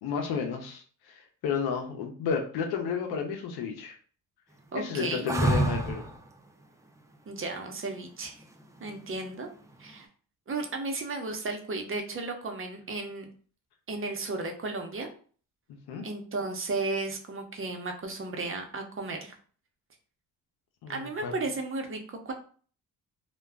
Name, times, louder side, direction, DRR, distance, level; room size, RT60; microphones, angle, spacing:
voice 1, 0.0-4.0 4.7-6.0 15.9-16.0 20.8-21.3, left 6 dB, 80° left, 2 dB, 0.6 m, -32 dB
voice 2, 4.7-5.3 7.3-8.4 8.8-9.5 9.8-10.1 10.5-13.3 13.9-15.1 16.0-19.3 20.9-22.3, right 3 dB, 35° right, 4 dB, 0.7 m, -34 dB
sound 1, 5.3-6.2 8.8-9.4, right 2 dB, 10° right, 0.4 m, -26 dB
2.2 x 2.1 x 3.4 m, 0.42 s
cardioid pair, 65°, 38 cm